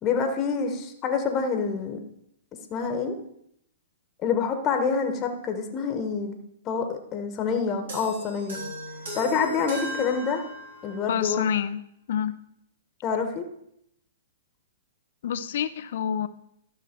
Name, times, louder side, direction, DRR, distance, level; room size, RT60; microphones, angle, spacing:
voice 1, 0.0-2.0 2.7-3.1 4.2-6.4 6.6-8.6 9.1-10.4 10.8-11.4 13.0-13.4, left 5 dB, 25° left, 6 dB, 1.3 m, -27 dB
sound 1, 7.9-11.1, equal, 75° right, 3.5 m, -37 dB
voice 2, 11.1-11.8 12.1-12.4 15.2-16.3, left 8 dB, 60° left, 13 dB, 0.7 m, -27 dB
13.0 x 6.0 x 4.5 m, 0.75 s
hypercardioid pair, 125°, 0 cm